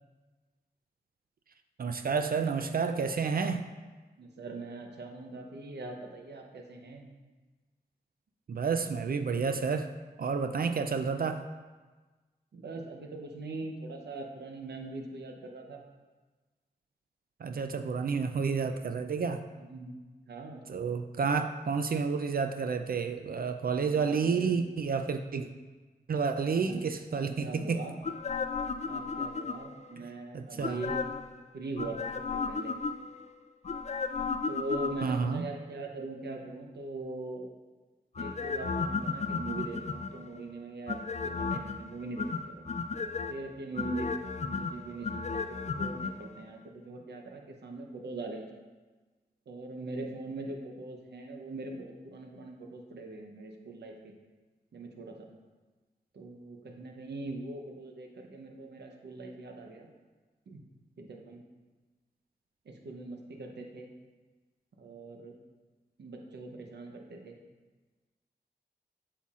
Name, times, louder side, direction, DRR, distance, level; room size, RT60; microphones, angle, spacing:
voice 1, 1.8-3.6 8.5-9.9 10.2-11.4 17.4-19.4 20.7-25.5 26.1-27.8 30.0-30.1 30.3-30.8 35.0-35.4, right 5 dB, 60° right, 7 dB, 0.4 m, -30 dB
voice 2, 4.2-7.1 12.5-15.8 19.6-19.9 20.3-20.6 23.7-24.6 26.5-26.8 27.1-28.0 28.8-31.1 31.5-32.7 34.5-37.5 38.2-42.6 43.3-44.1 44.4-46.6 46.8-48.5 49.5-54.1 54.7-55.3 56.1-59.9 60.5-60.7 61.0-61.4 62.7-63.9 64.8-65.4 66.0-67.4, right 2 dB, 90° right, 2 dB, 0.8 m, -41 dB
sound 1, 28.0-29.9 30.6-31.3 31.8-33.2 33.7-35.4 38.2-40.3 40.9-41.8 42.2-43.3 43.8-46.1 46.4-46.5, left 4 dB, 40° left, 0.4 m, -34 dB
8.1 x 5.7 x 2.4 m, 1.3 s
cardioid pair, 50°, 17 cm